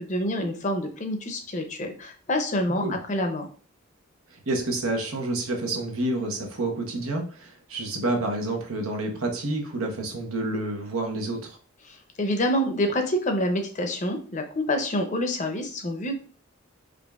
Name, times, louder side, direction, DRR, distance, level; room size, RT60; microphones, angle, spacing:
voice 1, 0.0-3.5 12.2-16.1, left 1 dB, 35° left, 5 dB, 0.5 m, -27 dB
voice 2, 4.3-11.6, right 2 dB, 85° right, 2 dB, 1.0 m, -29 dB
5.0 x 2.5 x 2.3 m, 0.43 s
head